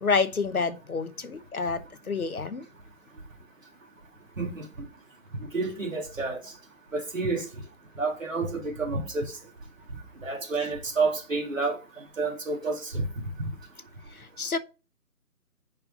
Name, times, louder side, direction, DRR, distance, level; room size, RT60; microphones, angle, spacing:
voice 1, 0.0-2.7 14.1-14.6, left 4 dB, 65° left, 1.0 m, -28 dB
voice 2, 5.5-6.4 6.9-7.4 8.0-9.3 10.2-11.8 12.2-13.1, right 3 dB, 55° right, 2.6 m, -29 dB
5.6 x 5.6 x 5.2 m
figure-of-eight pair, 165°, 47 cm